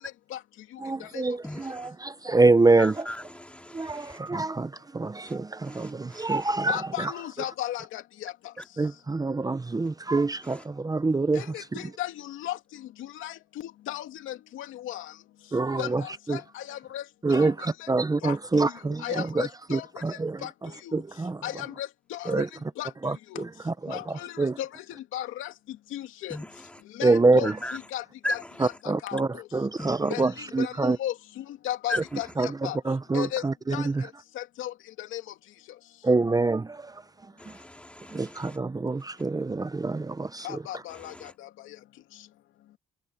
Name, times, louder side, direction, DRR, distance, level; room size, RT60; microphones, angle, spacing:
voice 1, 0.8-3.1 3.7-7.1 8.8-11.8 15.5-16.0 16.3-16.4 17.2-21.4 22.3-22.5 23.0-24.6 27.0-27.6 28.6-31.0 32.4-34.1 36.0-37.0 37.5-37.6 38.1-40.8, right 3 dB, 20° right, 0.8 m, -26 dB
voice 2, 1.4-1.9 2.8-4.2 5.7-6.3 26.3-26.5 27.6-27.8 28.2-28.4 29.8-29.9 31.9-32.0 37.4-38.6 41.1-41.2, left 1 dB, 5° left, 2.5 m, -36 dB
voice 3, 6.7-8.3 11.3-12.6 13.0-13.3 13.9-15.1 15.8-17.0 17.3-17.7 18.2-18.4 18.6-18.7 19.0-19.9 20.4-20.5 21.4-22.4 22.8-22.9 23.3-23.4 23.9-24.7 25.1-25.5 25.9-26.4 27.0-28.7 29.0-29.2 30.1-30.3 30.6-32.8 33.1-33.4 33.7-33.9 34.4-35.2 40.4-41.3, left 13 dB, 90° left, 2.6 m, -35 dB
cardioid pair, 90°, 20 cm